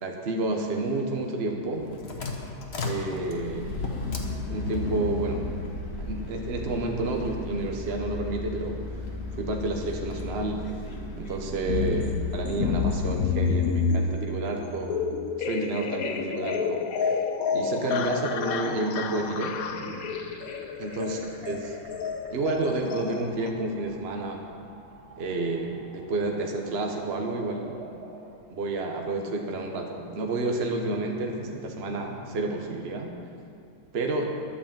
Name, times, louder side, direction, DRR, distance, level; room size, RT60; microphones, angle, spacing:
voice 1, 0.0-1.9 2.8-3.8 4.3-5.5 6.0-10.7 11.2-15.0 15.4-16.8 17.5-20.1 20.8-21.2 21.4-21.8 22.3-24.4 25.2-27.8 28.5-33.1 33.9-34.2, right 2 dB, 45° right, 2 dB, 1.1 m, -30 dB
sound 1, 1.6-13.2, left 2 dB, 40° left, 1.3 m, -35 dB
sound 2, 11.7-23.5, left 5 dB, 65° left, 1.1 m, -29 dB
sound 3, 19.0-33.1, right 1 dB, 70° right, 2.2 m, -49 dB
11.0 x 8.6 x 7.4 m, 2.5 s
omnidirectional pair, 1.8 m